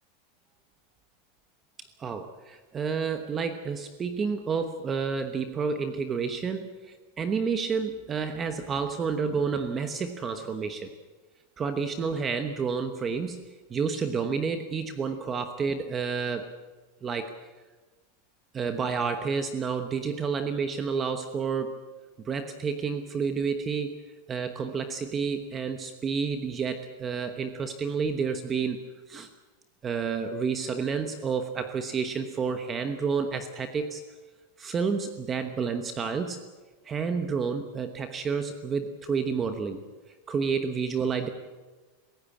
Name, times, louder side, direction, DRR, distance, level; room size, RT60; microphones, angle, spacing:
voice 1, 1.8-6.7 7.2-10.9 11.6-13.4 13.7-16.5 17.0-17.3 18.5-21.8 22.2-23.9 24.3-28.8 29.1-29.3 29.8-34.0 34.6-36.4 36.8-39.8 40.3-41.3, right 5 dB, 20° right, 8 dB, 1.1 m, -30 dB
27.0 x 15.5 x 8.5 m, 1.3 s
supercardioid pair, 165°, 0 cm